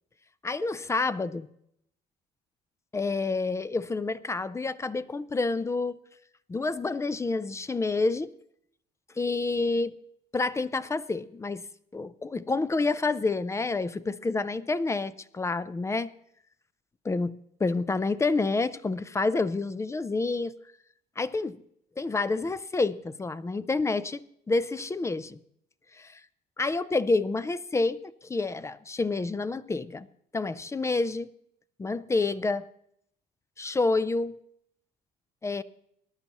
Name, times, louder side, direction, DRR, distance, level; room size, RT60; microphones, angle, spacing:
voice 1, 0.4-1.5 2.9-6.0 6.5-8.3 9.2-9.9 10.3-11.7 11.9-16.1 17.0-17.4 17.6-20.5 21.2-21.6 22.0-24.2 24.5-25.4 26.0-26.2 26.6-28.0 28.3-30.1 30.3-31.3 31.8-32.6 33.6-34.4 35.4-35.6, left 3 dB, 15° left, 17 dB, 0.4 m, -28 dB
19.5 x 11.0 x 3.0 m, 0.72 s
cardioid pair, 110°, 17 cm